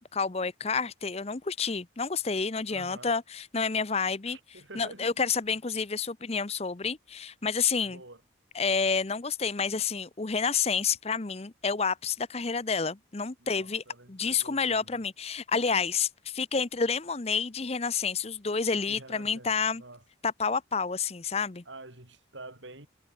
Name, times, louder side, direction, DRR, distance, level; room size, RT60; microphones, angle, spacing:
voice 1, 0.1-8.0 8.5-19.8 20.2-21.6, left 5 dB, 30° left, 0.7 m, -29 dB
voice 2, 2.7-3.1 4.3-5.2 7.9-8.2 13.4-15.0 18.9-20.0 21.7-22.9, right 2 dB, 70° right, 6.1 m, -48 dB
head